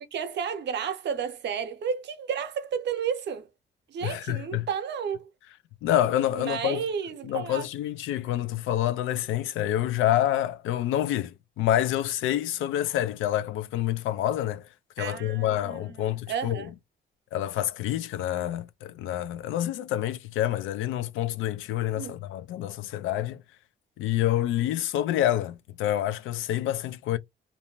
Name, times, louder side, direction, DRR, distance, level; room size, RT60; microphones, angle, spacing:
voice 1, 0.1-3.5 3.9-5.3 6.3-7.6 15.0-16.7 21.9-22.2, right 7 dB, 60° right, 0.7 m, -32 dB
voice 2, 4.0-4.6 5.8-6.8 7.2-14.7 15.0-16.7 17.3-23.4 24.0-27.2, left 12 dB, 90° left, 0.4 m, -27 dB
2.6 x 2.1 x 3.0 m
cardioid pair, 90°, 20 cm